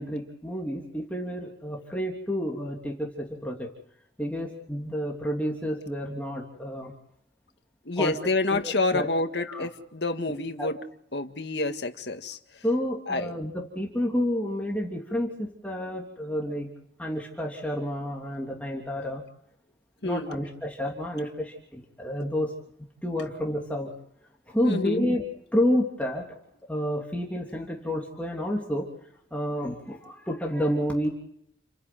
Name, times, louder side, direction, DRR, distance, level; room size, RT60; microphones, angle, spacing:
voice 1, 0.0-3.7 4.2-6.9 8.0-8.1 8.5-9.1 9.3-9.7 10.6-10.7 12.6-16.7 17.0-19.2 20.0-22.5 23.0-23.9 24.5-25.2 25.5-26.3 26.7-28.9 29.3-31.1, equal, 10° left, -2 dB, 3.1 m, -30 dB
voice 2, 7.9-10.8 11.1-12.4 13.1-13.3 20.0-20.3 24.6-25.1, left 2 dB, 75° left, 7 dB, 2.0 m, -28 dB
30.0 x 10.5 x 9.3 m, 0.72 s
head